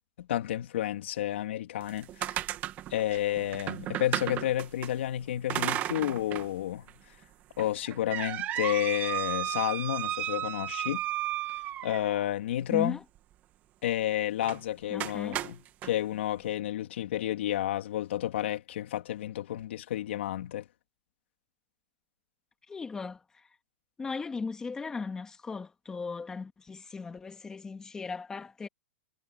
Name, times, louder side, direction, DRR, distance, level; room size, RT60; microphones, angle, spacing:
voice 1, 0.2-2.4 2.9-6.8 7.6-11.0 11.8-13.0 13.8-20.6, left 12 dB, 70° left, 2.8 m, -31 dB
sound 1, 1.8-4.9 5.5-6.5 6.9-7.0 7.6-12.3 14.4-14.6 15.0-15.9, right 13 dB, 25° right, 1.9 m, -34 dB
voice 2, 12.7-13.0 14.9-15.4 22.7-23.5 24.0-28.7, left 4 dB, 10° left, 2.0 m, -37 dB
supercardioid pair, 160°, 7 cm